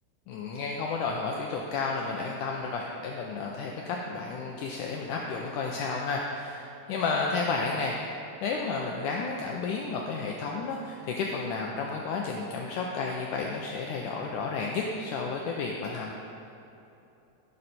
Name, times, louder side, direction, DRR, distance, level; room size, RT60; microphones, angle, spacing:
voice 1, 0.3-8.0 8.4-16.1, left 4 dB, 90° left, 0 dB, 1.7 m, -32 dB
15.0 x 6.5 x 4.2 m, 2.9 s
omnidirectional pair, 4.4 m